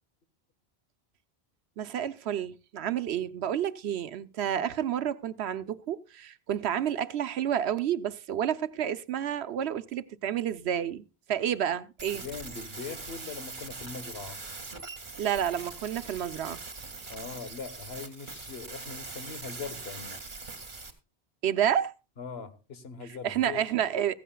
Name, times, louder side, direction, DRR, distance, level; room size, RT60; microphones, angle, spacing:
voice 1, 1.8-12.2 15.2-16.6 21.4-21.9 23.2-24.1, right 9 dB, 85° right, 1.0 m, -30 dB
sound 1, 12.0-20.9, right 3 dB, 50° right, 1.8 m, -42 dB
voice 2, 12.1-14.4 17.1-20.2 22.2-23.7, left 5 dB, 75° left, 1.4 m, -41 dB
15.5 x 15.0 x 2.2 m
omnidirectional pair, 1.1 m